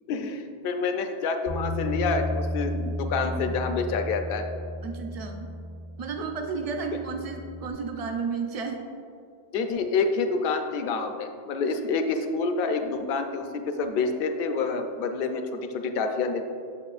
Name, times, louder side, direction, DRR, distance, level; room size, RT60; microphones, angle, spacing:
voice 1, 0.1-4.5 9.5-16.4, left 4 dB, 65° left, 6 dB, 0.7 m, -28 dB
Bass guitar, 1.5-7.7, left 1 dB, 85° right, 1.7 m, -34 dB
voice 2, 4.8-5.5 6.0-8.8 11.8-11.9, right 5 dB, 45° right, 4 dB, 0.5 m, -32 dB
6.8 x 6.7 x 2.4 m, 2.3 s
omnidirectional pair, 1.1 m